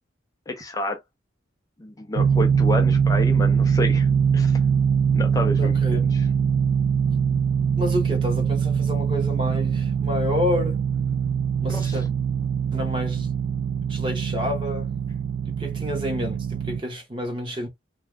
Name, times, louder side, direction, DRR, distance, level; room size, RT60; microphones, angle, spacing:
voice 1, 0.5-1.0 1.8-4.1 4.3-4.6 5.1-6.3 11.7-12.0, left 1 dB, 20° left, 0.4 m, -30 dB
sound 1, 2.2-16.8, right 7 dB, 80° right, 0.3 m, -22 dB
voice 2, 5.6-6.0 7.8-10.8 11.6-12.0 12.7-13.3 13.9-14.9 15.5-17.7, left 1 dB, 25° right, 0.8 m, -29 dB
2.4 x 2.2 x 3.1 m
head